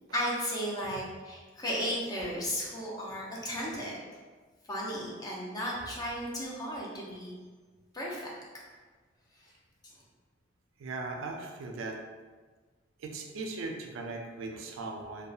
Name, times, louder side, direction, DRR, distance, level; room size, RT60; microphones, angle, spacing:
voice 1, 0.1-4.0 4.7-7.3 7.9-8.3, equal, 20° left, -5 dB, 0.5 m, -34 dB
voice 2, 10.8-12.0 13.0-15.3, right 3 dB, 85° right, 2 dB, 0.3 m, -38 dB
2.6 x 2.2 x 2.3 m, 1.4 s
head